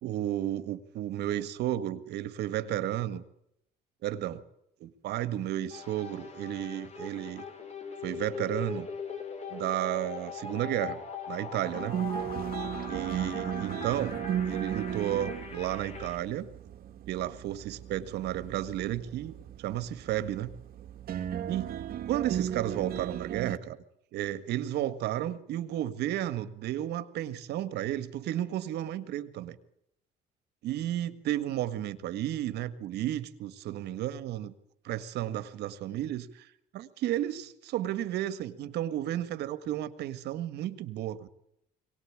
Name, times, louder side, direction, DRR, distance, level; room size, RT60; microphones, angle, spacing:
voice 1, 0.0-3.2 4.0-4.4 4.8-7.4 8.0-8.9 9.5-11.0 11.3-11.9 12.9-14.2 14.4-16.5 17.1-20.5 21.5-21.8 22.0-23.8 24.1-29.6 30.6-34.5 34.8-36.5 36.7-41.3, right 12 dB, 80° right, 12 dB, 1.6 m, -33 dB
sound 1, 5.7-16.2, left 5 dB, 40° left, 5.9 m, -41 dB
sound 2, 11.7-23.6, right 9 dB, 60° right, 1.8 m, -36 dB
23.0 x 18.5 x 8.7 m, 0.78 s
cardioid pair, 110°, 17 cm